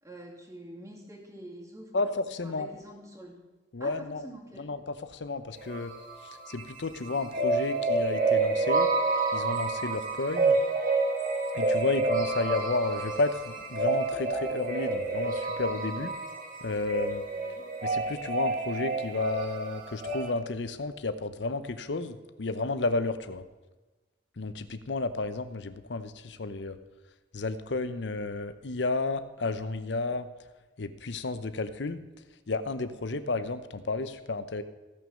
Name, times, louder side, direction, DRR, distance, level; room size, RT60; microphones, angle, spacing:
voice 1, 0.0-2.1 2.4-3.4 3.8-4.7 17.3-17.7, right 1 dB, 20° right, -1 dB, 2.4 m, -46 dB
voice 2, 1.9-2.7 3.7-4.3 4.6-5.9 6.2-8.9 9.3-10.6 11.5-16.1 16.6-17.2 17.8-23.4 24.4-26.8 27.3-30.3 30.8-32.0 32.5-34.6, left 3 dB, 85° left, 11 dB, 0.7 m, -32 dB
sound 1, 5.6-6.7 7.0-20.3, right 3 dB, 50° right, 1.7 m, -29 dB
15.5 x 6.2 x 6.3 m, 1.2 s
head